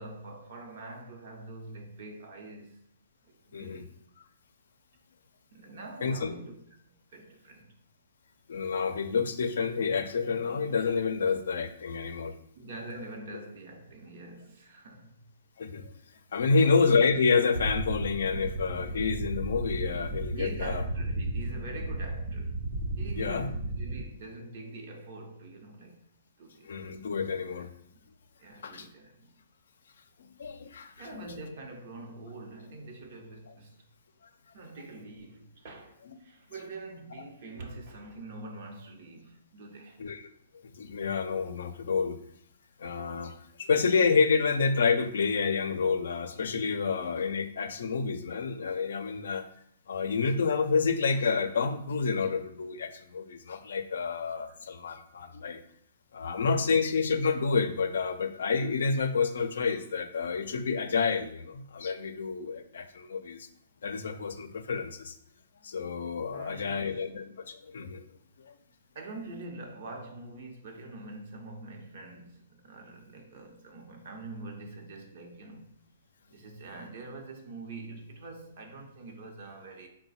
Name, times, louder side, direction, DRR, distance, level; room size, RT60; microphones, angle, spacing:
voice 1, 0.0-2.9 3.2-3.9 5.5-6.6 7.1-7.7 12.6-15.1 16.4-16.7 20.3-22.6 23.0-26.0 26.4-26.7 28.4-29.3 31.0-33.9 34.5-40.0 56.2-56.3 66.3-67.0 68.9-75.7 76.3-79.9, right 2 dB, 55° right, 0.8 m, -44 dB
voice 2, 3.5-3.8 6.0-6.3 8.5-12.3 15.6-15.9 16.3-20.8 23.2-23.5 26.6-27.7 28.6-28.9 30.4-31.2 40.0-40.2 40.8-42.2 42.8-49.4 49.9-55.6 56.1-63.5 63.8-65.2 65.6-68.0 68.4-68.6, left 5 dB, 75° left, 0.4 m, -29 dB
sound 1, 17.5-24.0, right 1 dB, 85° right, 0.9 m, -34 dB
3.9 x 2.1 x 4.1 m
hypercardioid pair, 150°, 0 cm